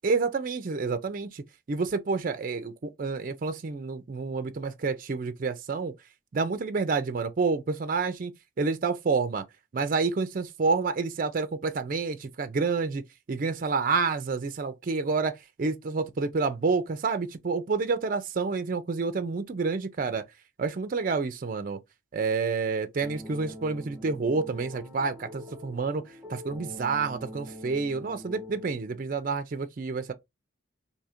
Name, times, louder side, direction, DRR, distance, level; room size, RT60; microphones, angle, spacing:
voice 1, 0.0-1.4 1.7-5.9 6.3-8.3 8.6-9.4 9.7-20.2 20.6-21.8 22.1-26.0 26.3-30.1, right 4 dB, 40° right, 0.4 m, -29 dB
sound 1, 23.0-29.1, left 1 dB, 15° right, 0.7 m, -44 dB
2.7 x 2.4 x 4.2 m
head